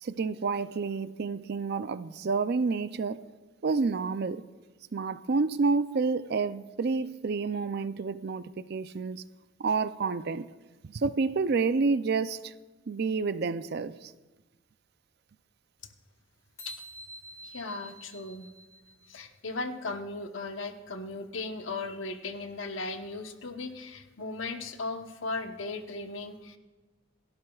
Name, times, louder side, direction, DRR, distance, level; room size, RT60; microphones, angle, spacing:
voice 1, 0.0-3.3 3.6-4.4 4.9-9.2 9.6-10.5 10.8-12.5 12.9-14.1, right 4 dB, 55° right, 0.5 m, -29 dB
sound 1, 16.6-19.2, right 1 dB, 15° left, 2.8 m, -47 dB
voice 2, 17.4-18.5 19.1-26.6, left 3 dB, 80° left, 1.0 m, -37 dB
27.5 x 12.0 x 2.4 m
head